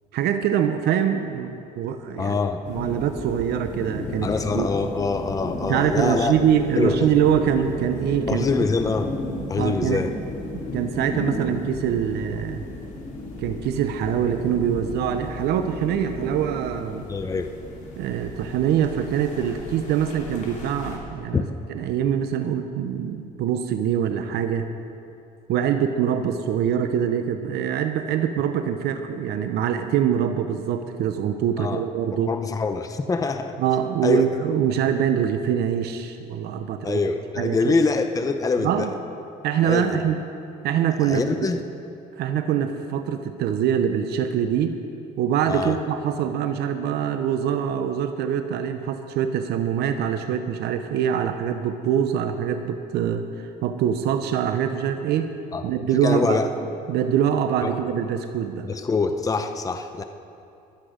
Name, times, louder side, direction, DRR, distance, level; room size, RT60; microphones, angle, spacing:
voice 1, 0.1-2.4 2.7-4.3 4.5-4.7 5.7-8.5 9.6-10.1 10.7-12.6 13.4-17.1 18.0-21.4 21.7-24.7 25.5-32.3 33.6-37.0 37.4-37.7 38.6-38.9 39.4-40.2 40.6-41.2 42.2-44.8 45.2-55.3 55.6-56.5 56.9-58.7, right 9 dB, 75° right, 8 dB, 0.8 m, -24 dB
voice 2, 2.2-2.6 4.2-6.3 6.8-7.1 8.3-9.1 9.5-10.1 17.1-17.5 21.3-21.4 31.6-31.8 32.1-33.6 34.0-34.2 36.8-38.9 39.6-40.0 41.0-41.6 45.5-45.8 55.5-55.7 56.0-56.5 57.6-57.7 58.6-60.0, left 4 dB, 20° left, 7 dB, 0.7 m, -24 dB
sound 1, 2.6-21.0, left 2 dB, 45° left, 3.1 m, -34 dB
22.0 x 8.4 x 5.1 m, 2.6 s
cardioid pair, 110°, 17 cm